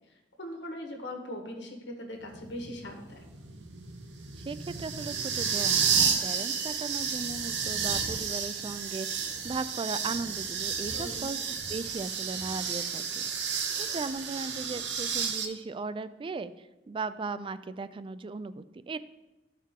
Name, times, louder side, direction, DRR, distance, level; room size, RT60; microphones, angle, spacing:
voice 1, 0.4-3.3 10.9-11.3, left 1 dB, 90° left, 2 dB, 1.5 m, -40 dB
sound 1, 2.3-15.4, right 6 dB, 85° right, 0.9 m, -31 dB
voice 2, 4.3-13.0 13.8-19.0, right 4 dB, 30° right, 13 dB, 0.3 m, -37 dB
13.0 x 4.6 x 3.7 m, 1.1 s
head